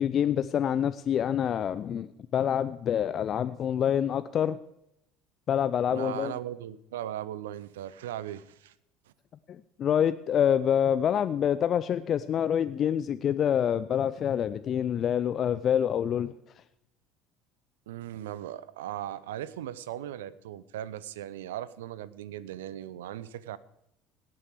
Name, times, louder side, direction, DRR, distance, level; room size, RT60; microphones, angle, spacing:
voice 1, 0.0-4.6 5.5-6.3 9.5-16.3, left 9 dB, 45° left, 13 dB, 0.5 m, -26 dB
voice 2, 5.9-8.7 17.9-23.6, right 12 dB, 75° right, 18 dB, 0.6 m, -38 dB
17.5 x 8.6 x 4.8 m, 0.82 s
figure-of-eight pair, 65°, 0 cm